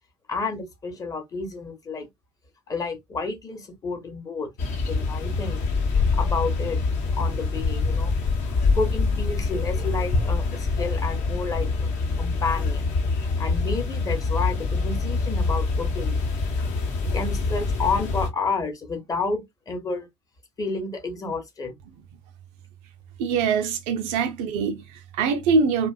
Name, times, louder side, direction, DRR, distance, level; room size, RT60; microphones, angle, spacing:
voice 1, 0.3-2.1 2.7-5.7 6.1-6.8 7.1-8.2 8.4-11.9 12.2-12.9 13.4-16.2 17.1-20.1 20.6-21.7, left 4 dB, 25° left, 0.8 m, -30 dB
sound 1, 4.6-18.3, left 4 dB, 50° left, 0.8 m, -25 dB
voice 2, 23.2-25.9, right 5 dB, 55° right, 0.4 m, -23 dB
2.5 x 2.2 x 2.2 m
figure-of-eight pair, 60°, 15 cm